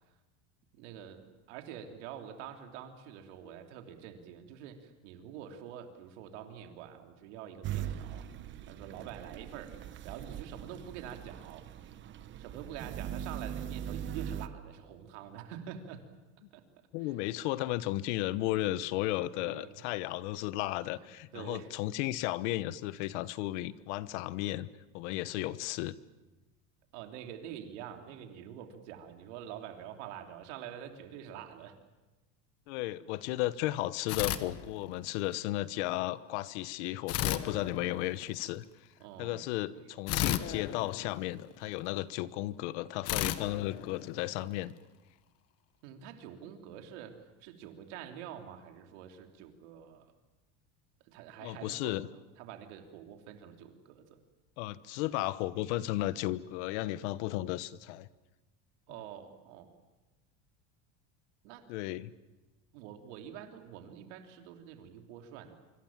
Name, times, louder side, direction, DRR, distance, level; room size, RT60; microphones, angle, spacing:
voice 1, 0.7-8.3 8.7-9.8 10.0-11.7 12.4-16.0 16.5-16.6 19.3-19.8 21.0-21.7 26.9-31.7 39.0-39.4 39.8-40.0 45.8-50.1 51.0-52.0 52.4-54.2 58.9-59.7 61.4-61.7 62.7-65.6, right 9 dB, 80° right, 5 dB, 3.2 m, -46 dB
sound 1, 7.6-14.5, right 10 dB, 35° right, 1.0 m, -41 dB
voice 2, 16.9-24.7 24.9-26.0 32.7-38.6 39.2-44.7 51.4-52.1 54.6-58.1 61.7-62.1, left 16 dB, 80° left, 16 dB, 1.2 m, -34 dB
sound 2, 34.1-35.2 37.1-38.5 40.1-41.8 43.1-44.6, left 12 dB, 45° left, 1.3 m, -35 dB
25.5 x 25.5 x 7.4 m, 1.1 s
cardioid pair, 155°, 34 cm